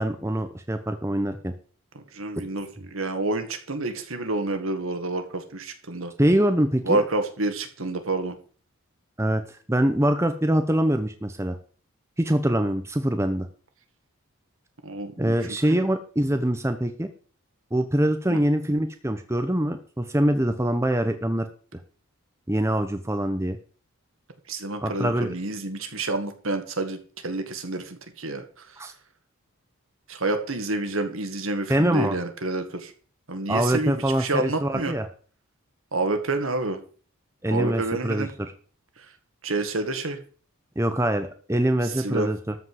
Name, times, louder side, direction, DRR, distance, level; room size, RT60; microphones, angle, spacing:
voice 1, 0.0-1.5 6.2-7.0 9.2-11.6 12.2-13.5 15.2-17.1 17.7-21.5 21.7-21.8 22.5-23.6 24.8-25.3 28.8-28.9 31.7-32.2 33.5-35.1 37.4-38.5 40.8-42.5, right 1 dB, 10° right, 7 dB, 0.8 m, -24 dB
voice 2, 2.1-6.1 6.8-8.4 14.8-15.4 15.7-15.8 18.3-18.4 24.5-28.4 30.1-32.9 33.3-34.9 35.9-36.8 37.5-38.3 39.4-40.2 41.9-42.3, right 2 dB, 70° right, 7 dB, 1.9 m, -28 dB
13.5 x 5.3 x 8.0 m, 0.41 s
head